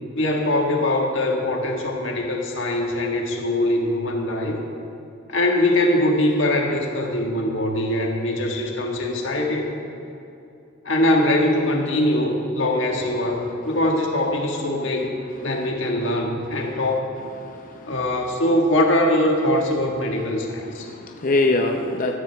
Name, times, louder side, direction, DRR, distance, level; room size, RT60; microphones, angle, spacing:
voice 1, 0.1-4.6 5.3-9.7 10.8-15.1 15.4-17.1 17.9-20.9, left 1 dB, 65° left, 0 dB, 1.7 m, -22 dB
voice 2, 17.4-18.0 20.8-22.2, left 2 dB, 40° left, 3 dB, 0.7 m, -24 dB
16.0 x 13.5 x 3.5 m, 2.6 s
head